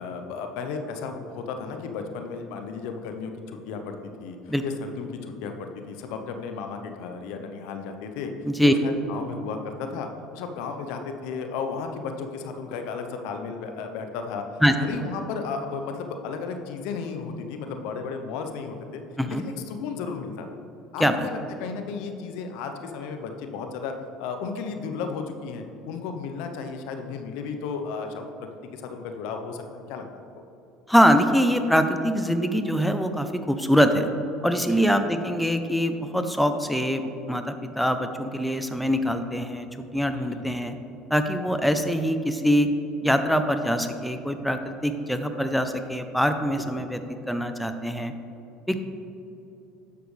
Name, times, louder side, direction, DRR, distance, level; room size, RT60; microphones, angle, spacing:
voice 1, 0.0-8.3 8.6-14.4 14.8-19.0 19.3-20.5 20.9-28.3 28.7-30.0 34.7-34.8 40.1-40.5 46.5-46.8 48.7-48.8, left 5 dB, 70° left, 5 dB, 0.7 m, -34 dB
voice 2, 30.9-34.1 34.4-39.7 39.9-40.8 41.1-42.7 43.0-47.0 47.3-48.1 48.7-48.8, equal, ahead, 8 dB, 0.6 m, -23 dB
10.0 x 6.9 x 3.3 m, 2.9 s
hypercardioid pair, 75°, 0 cm